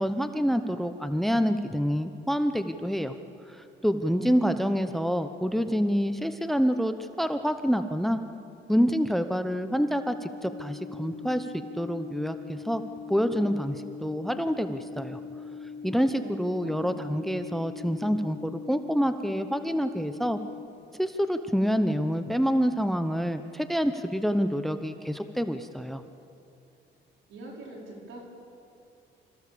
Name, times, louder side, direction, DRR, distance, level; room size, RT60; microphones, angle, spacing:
voice 1, 0.0-3.2 3.5-8.2 8.7-12.8 13.1-15.2 15.8-20.4 21.0-26.0, equal, ahead, 9 dB, 0.9 m, -27 dB
voice 2, 4.0-5.0 16.2-16.9 27.3-28.2, right 2 dB, 80° right, -1 dB, 5.0 m, -44 dB
sound 1, 9.9-20.7, left 5 dB, 55° left, 0.9 m, -41 dB
25.5 x 15.5 x 7.0 m, 2.6 s
cardioid pair, 90°, 20 cm